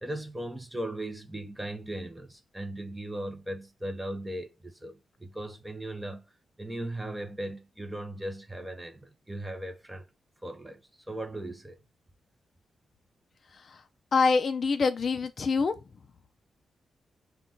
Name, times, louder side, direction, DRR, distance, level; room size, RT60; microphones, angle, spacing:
voice 1, 0.0-6.2 6.6-10.1 10.4-10.8 11.1-11.8, right 1 dB, 10° right, 0.7 m, -38 dB
voice 2, 13.5-13.8 14.1-15.7, left 4 dB, 40° left, 0.3 m, -25 dB
5.7 x 2.3 x 3.7 m
wide cardioid pair, 175°, 0 cm